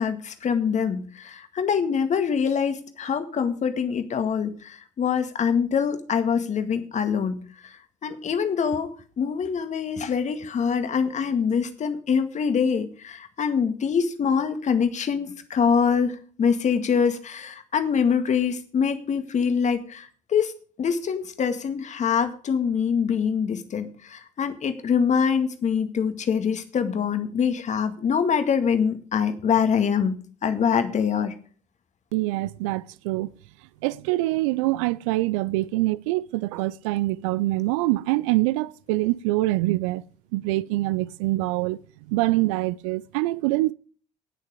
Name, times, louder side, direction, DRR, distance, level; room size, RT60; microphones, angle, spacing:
voice 1, 0.0-8.9 9.2-20.5 20.8-30.1 30.4-31.3, left 6 dB, 45° left, 2.0 m, -24 dB
voice 2, 32.1-33.3 33.8-40.0 40.3-41.8 42.1-43.7, right 19 dB, 70° right, 0.5 m, -24 dB
18.5 x 6.6 x 4.9 m
hypercardioid pair, 55°, 17 cm